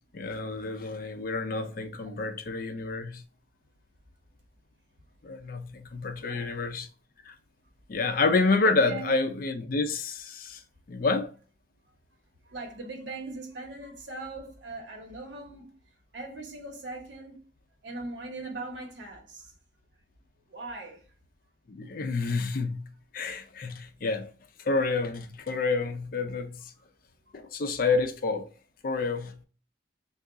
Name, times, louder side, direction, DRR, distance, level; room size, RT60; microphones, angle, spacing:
voice 1, 0.1-3.2 5.2-6.9 7.3-7.4 7.9-10.6 10.9-11.3 21.7-24.3 24.6-26.6 27.3-28.5 28.8-29.4, left 3 dB, 50° left, 0.5 m, -28 dB
voice 2, 1.8-2.5 6.1-6.6 8.6-9.2 12.4-15.8 16.1-17.4 17.8-19.5 20.5-21.0, right 2 dB, 75° right, 1.1 m, -40 dB
3.5 x 2.4 x 3.7 m
head